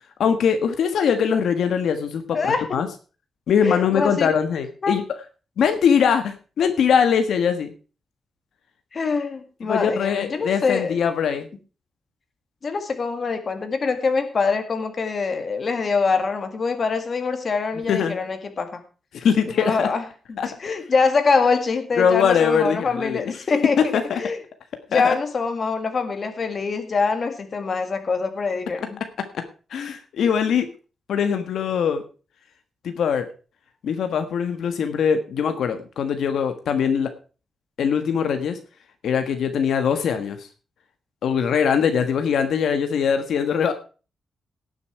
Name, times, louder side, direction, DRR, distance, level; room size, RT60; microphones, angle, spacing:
voice 1, 0.2-2.9 3.5-5.0 5.6-7.7 9.6-11.5 17.9-18.2 19.1-19.9 20.4-20.5 22.0-23.2 24.1-24.2 24.9-25.1 29.7-30.7 31.1-32.0 32.8-33.3 33.8-37.1 37.8-38.6 39.0-40.5 41.2-43.7, left 7 dB, 70° left, 8 dB, 1.4 m, -22 dB
voice 2, 2.3-2.7 3.6-4.3 4.8-5.0 8.9-11.0 12.6-18.8 19.5-20.0 20.3-24.4 24.9-29.0, left 4 dB, 35° left, 7 dB, 1.9 m, -24 dB
18.0 x 7.1 x 4.6 m, 0.35 s
wide cardioid pair, 165°, 0 cm